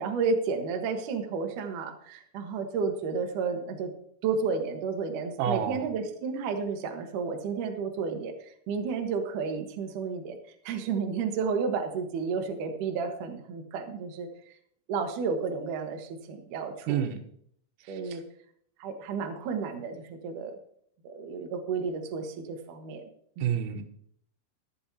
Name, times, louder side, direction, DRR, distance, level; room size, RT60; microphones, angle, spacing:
voice 1, 0.0-3.9 4.2-8.3 8.7-10.4 10.6-14.3 14.9-17.1 17.9-18.2 18.8-20.6 21.0-23.0 23.4-23.6, right 5 dB, 70° right, 4 dB, 2.0 m, -32 dB
voice 2, 5.4-5.8 16.9-17.2 17.9-18.2 23.4-23.8, right 9 dB, 85° right, 6 dB, 3.8 m, -29 dB
14.0 x 12.0 x 2.9 m, 0.65 s
omnidirectional pair, 5.8 m